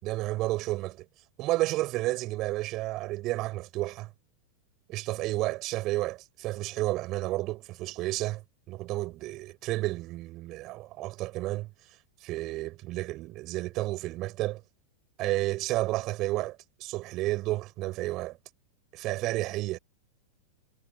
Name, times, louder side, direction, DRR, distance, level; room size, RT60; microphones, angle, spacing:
voice 1, 0.0-1.1 1.4-4.1 4.9-8.4 8.7-11.7 12.2-14.6 15.2-18.4 18.9-19.8, right 18 dB, 40° right, 7.2 m, -31 dB
figure-of-eight pair, 90°, 0 cm